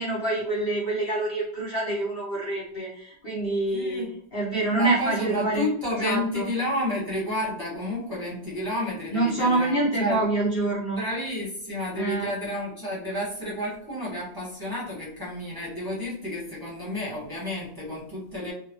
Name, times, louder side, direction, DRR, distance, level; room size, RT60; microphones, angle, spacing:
voice 1, 0.0-4.0 4.3-5.6 6.0-6.5 9.1-11.0 11.9-12.3, right 2 dB, 90° left, -5 dB, 0.5 m, -26 dB
voice 2, 3.7-4.1 4.8-10.2 10.9-18.5, left 1 dB, 15° right, -8 dB, 0.8 m, -31 dB
3.8 x 2.1 x 3.0 m, 0.70 s
omnidirectional pair, 2.1 m